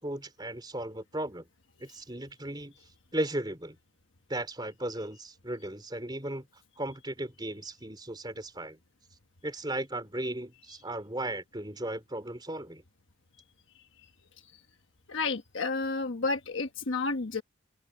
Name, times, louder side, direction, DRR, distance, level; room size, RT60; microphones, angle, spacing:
voice 1, 0.0-1.5 1.8-2.7 3.1-3.8 4.3-6.5 6.8-8.8 9.4-12.8, right 1 dB, 20° right, 4.2 m, -36 dB
voice 2, 15.1-17.4, left 3 dB, 65° left, 1.2 m, -31 dB
open air
head